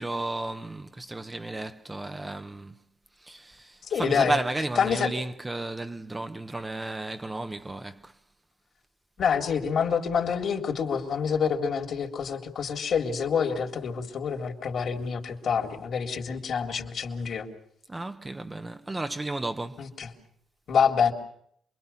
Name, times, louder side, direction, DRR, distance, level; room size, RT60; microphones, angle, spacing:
voice 1, 0.0-2.8 3.2-8.1 17.9-19.9, right 2 dB, 15° right, 1.0 m, -33 dB
voice 2, 3.8-4.4 4.8-5.1 9.2-17.5 19.8-20.1 20.7-21.1, left 6 dB, 60° left, 3.6 m, -27 dB
28.0 x 22.5 x 5.7 m
cardioid pair, 90°, 0 cm